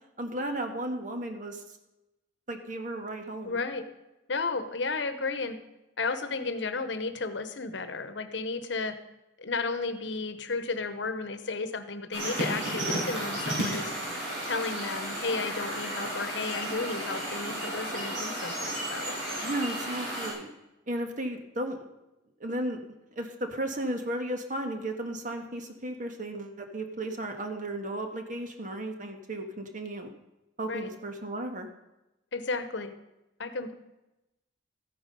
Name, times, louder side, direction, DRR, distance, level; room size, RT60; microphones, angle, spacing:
voice 1, 0.2-1.6 2.5-3.6 19.4-20.5 20.9-21.8 22.4-30.1 30.6-31.7, right 1 dB, 40° right, 5 dB, 1.5 m, -34 dB
voice 2, 3.4-3.8 4.3-5.6 6.0-9.0 9.4-13.9 14.4-19.2 30.7-30.9 32.3-32.9 33.4-33.7, left 3 dB, 65° left, 11 dB, 1.0 m, -33 dB
sound 1, 12.1-20.3, right 1 dB, 90° right, 6.0 m, -33 dB
14.0 x 9.7 x 5.4 m, 0.96 s
head